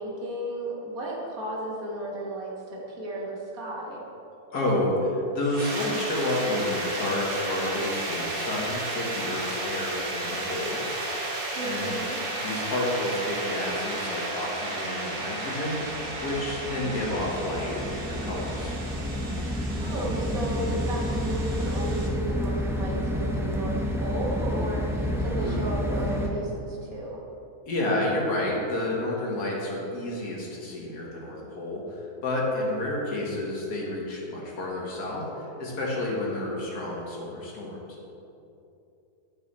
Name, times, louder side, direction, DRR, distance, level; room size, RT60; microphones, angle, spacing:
voice 1, 0.0-4.0 11.5-12.2 19.8-27.2, right 1 dB, 65° right, -3 dB, 1.9 m, -33 dB
voice 2, 4.5-10.9 11.6-12.0 12.3-18.8 25.3-25.6 27.7-37.8, left 1 dB, 80° left, -4 dB, 2.2 m, -30 dB
sound 1, 5.4-22.1, right 2 dB, 40° right, 1.2 m, -33 dB
sound 2, 15.8-26.3, equal, 5° right, 0.4 m, -30 dB
11.0 x 5.7 x 4.2 m, 2.8 s
omnidirectional pair, 1.7 m